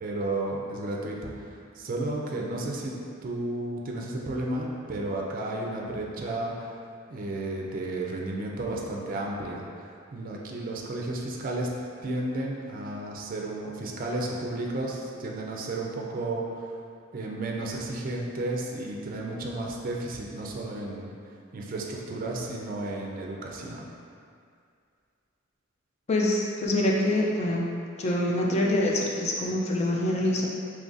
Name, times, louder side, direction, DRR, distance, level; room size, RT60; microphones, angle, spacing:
voice 1, 0.0-6.7 7.1-11.7 12.0-16.7 17.1-21.1 21.5-23.9, right 2 dB, 45° right, -1 dB, 0.4 m, -33 dB
voice 2, 26.1-27.7 28.0-30.5, left 1 dB, 35° left, -2 dB, 0.4 m, -25 dB
3.8 x 3.1 x 2.5 m, 2.3 s
head